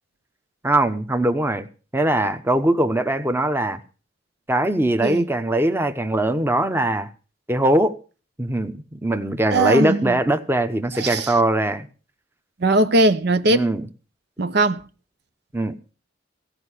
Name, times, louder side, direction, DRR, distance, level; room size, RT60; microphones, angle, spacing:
voice 1, 0.6-1.7 1.9-3.8 4.5-7.1 7.5-7.9 8.4-11.9 13.5-13.9 15.5-15.7, right 1 dB, 10° right, 0.9 m, -21 dB
voice 2, 9.5-10.2 10.9-11.3 12.6-13.7 14.4-14.8, right 2 dB, 60° right, 0.8 m, -20 dB
16.0 x 5.5 x 9.9 m
head